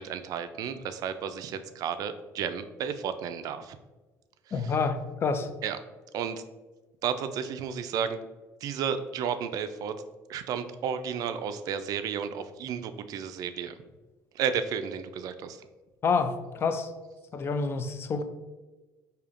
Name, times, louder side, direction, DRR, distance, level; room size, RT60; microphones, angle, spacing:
voice 1, 0.0-3.8 4.6-4.7 5.6-5.8 6.1-6.4 7.0-8.3 8.6-10.0 10.3-13.8 14.3-15.6, right 7 dB, 60° right, 10 dB, 0.3 m, -32 dB
voice 2, 4.5-5.5 16.0-16.9 17.3-18.2, left 5 dB, 35° left, 9 dB, 0.4 m, -28 dB
4.9 x 2.7 x 2.5 m, 1.2 s
cardioid pair, 110°, 7 cm